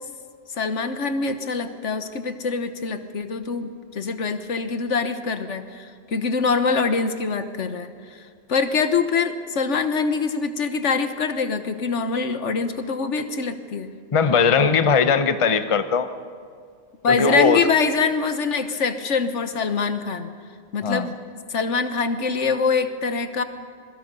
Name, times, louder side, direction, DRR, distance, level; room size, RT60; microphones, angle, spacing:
voice 1, 0.5-8.2 8.5-13.9 17.0-20.3 20.7-21.1 21.5-23.4, left 5 dB, 75° left, 9 dB, 1.5 m, -24 dB
voice 2, 14.1-16.1 17.1-17.6 20.8-21.1, left 5 dB, 30° left, 10 dB, 0.7 m, -19 dB
27.0 x 22.0 x 5.4 m, 2.1 s
omnidirectional pair, 1.2 m